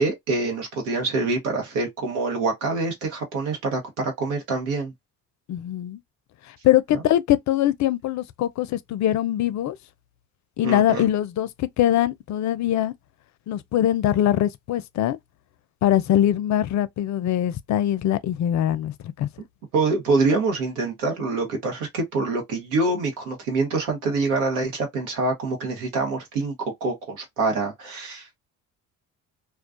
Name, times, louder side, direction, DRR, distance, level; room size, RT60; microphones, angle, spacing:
voice 1, 0.0-4.9 10.6-11.1 19.7-28.4, right 3 dB, 85° right, 1.1 m, -25 dB
voice 2, 5.5-6.0 6.6-9.8 10.6-12.9 13.5-15.2 15.8-19.3, left 12 dB, 50° left, 0.4 m, -22 dB
2.3 x 2.2 x 2.4 m
hypercardioid pair, 60°, 38 cm